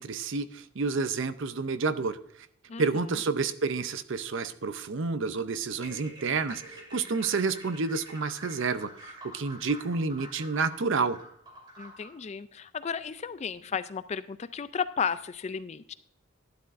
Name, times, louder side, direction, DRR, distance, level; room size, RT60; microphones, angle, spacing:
voice 1, 0.0-2.2 2.8-8.9 9.3-11.2, right 4 dB, 60° right, 13 dB, 0.6 m, -29 dB
sound 1, 5.7-12.2, right 1 dB, 20° right, 2.6 m, -47 dB
voice 2, 11.8-15.9, left 6 dB, 30° left, 14 dB, 0.3 m, -34 dB
12.0 x 11.0 x 2.6 m, 0.66 s
head